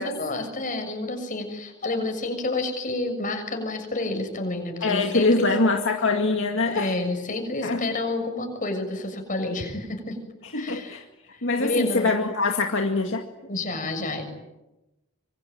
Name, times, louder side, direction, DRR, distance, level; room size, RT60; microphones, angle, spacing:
voice 1, 0.0-5.5 6.7-10.2 10.5-11.0 11.3-12.2 13.4-14.2, left 2 dB, 40° left, 6 dB, 6.8 m, -29 dB
voice 2, 4.8-6.9 7.6-7.9 10.4-11.0 11.4-13.3, left 3 dB, 60° left, 3 dB, 2.1 m, -23 dB
26.0 x 24.0 x 9.2 m, 1.0 s
head